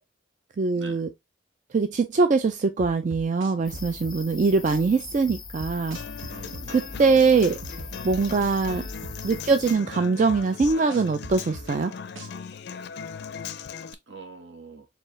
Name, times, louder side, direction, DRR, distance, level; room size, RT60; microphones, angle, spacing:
voice 1, 0.6-1.1 1.7-6.0 6.7-7.6 8.0-8.8 9.2-11.9, right 4 dB, 40° right, 0.3 m, -22 dB
sound 1, 2.8-4.2 4.7-4.8 5.3-6.7 7.2-7.3 7.6-9.2 9.7-9.8 10.3-11.7 12.2-12.3, right 1 dB, 90° right, 0.9 m, -40 dB
sound 2, 3.6-9.7, left 4 dB, 20° left, 0.9 m, -41 dB
Human voice / Acoustic guitar, 5.9-13.9, left 6 dB, 55° left, 0.4 m, -39 dB
voice 2, 6.3-7.4 8.7-8.9 9.6-9.8 14.1-14.8, right 3 dB, 65° right, 1.2 m, -45 dB
4.6 x 3.2 x 3.1 m
head